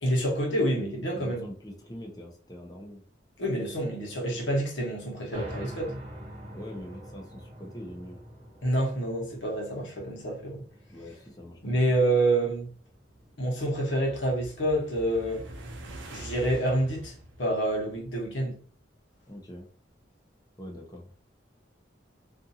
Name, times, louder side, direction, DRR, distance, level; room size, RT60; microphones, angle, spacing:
voice 1, 0.0-1.5 3.4-5.9 8.6-10.6 11.6-12.7 13.4-15.4 16.1-18.6, right 1 dB, 75° left, 1.0 m, -27 dB
voice 2, 1.1-3.0 6.5-8.2 10.9-11.8 19.3-19.7 20.6-21.1, left 1 dB, 20° left, 0.6 m, -43 dB
sound 1, 5.3-16.4, equal, 30° right, 0.9 m, -46 dB
sound 2, 12.9-18.4, right 1 dB, 75° right, 0.6 m, -45 dB
2.5 x 2.5 x 2.7 m
head